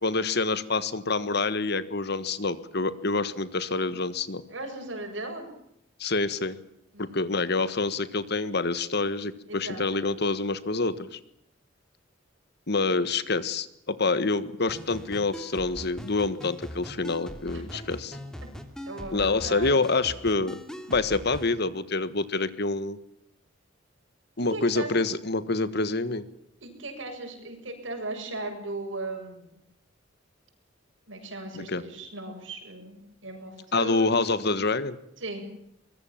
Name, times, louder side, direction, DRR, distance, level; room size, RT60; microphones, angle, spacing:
voice 1, 0.0-4.4 6.0-6.6 7.0-11.2 12.7-18.1 19.1-20.6 20.9-23.0 24.4-26.2 31.5-31.8 33.7-35.0, left 3 dB, 60° left, 14 dB, 1.6 m, -27 dB
voice 2, 4.5-5.5 6.9-7.2 9.5-10.1 17.5-17.6 18.9-19.7 24.5-25.0 26.6-29.6 31.1-34.2 35.2-35.5, right 2 dB, 80° right, 4 dB, 7.7 m, -37 dB
sound 1, 14.7-21.5, equal, 5° left, 2.8 m, -41 dB
23.5 x 21.5 x 7.5 m, 0.77 s
head